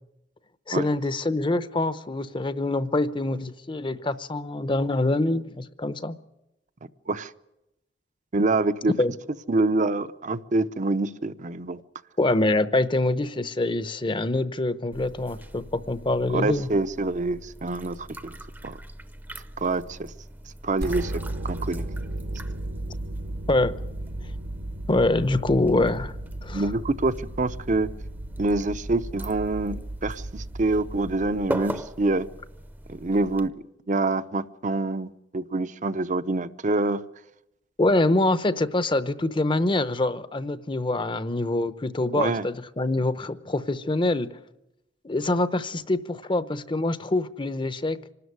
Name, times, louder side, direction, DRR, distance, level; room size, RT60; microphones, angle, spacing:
voice 1, 0.7-6.2 9.0-9.1 12.2-16.7 23.5-23.8 24.9-26.1 26.4-26.7 37.8-44.4 45.0-48.0, left 2 dB, 30° left, 0.8 m, -25 dB
voice 2, 8.3-8.9 9.5-11.8 16.3-18.3 18.6-18.8 19.6-20.1 20.6-21.1 21.4-21.8 26.5-27.9 28.4-32.3 32.9-37.0 42.1-42.5, right 2 dB, 45° right, 0.7 m, -26 dB
sound 1, 14.9-33.5, right 1 dB, 10° right, 0.7 m, -41 dB
sound 2, 20.8-31.8, right 1 dB, 60° right, 1.1 m, -35 dB
25.5 x 13.0 x 9.6 m
head